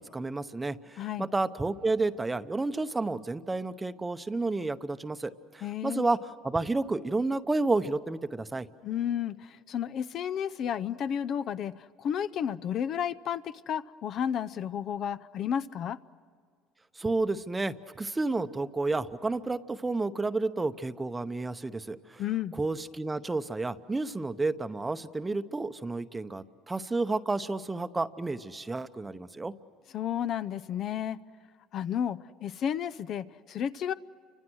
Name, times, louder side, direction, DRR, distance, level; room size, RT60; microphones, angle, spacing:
voice 1, 0.0-8.7 17.0-22.2 22.6-29.5, right 3 dB, 15° right, 11 dB, 0.8 m, -31 dB
voice 2, 5.6-6.1 8.8-16.0 22.2-22.5 29.9-31.2 31.7-33.9, left 9 dB, 45° left, 14 dB, 0.5 m, -32 dB
30.0 x 25.5 x 6.3 m, 2.1 s
cardioid pair, 130°, 0 cm